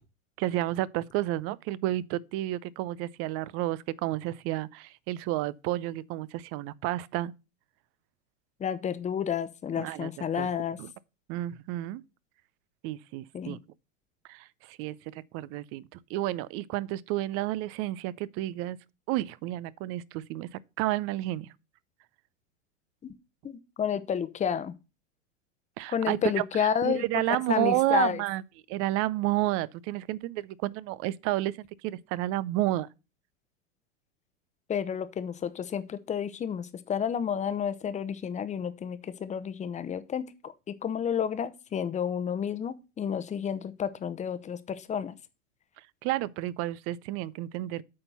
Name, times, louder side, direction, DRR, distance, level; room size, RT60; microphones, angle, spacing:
voice 1, 0.4-7.3 9.8-10.5 10.8-10.9 11.3-12.0 12.8-13.6 14.3-18.8 19.1-21.5 25.8-28.4 28.7-32.9 45.8-47.8, right 16 dB, 35° right, 0.5 m, -31 dB
voice 2, 8.6-10.8 13.3-13.6 23.0-23.1 23.4-24.7 25.9-28.2 34.7-45.2, left 8 dB, 20° left, 0.9 m, -31 dB
8.5 x 4.3 x 6.8 m
hypercardioid pair, 105°, 39 cm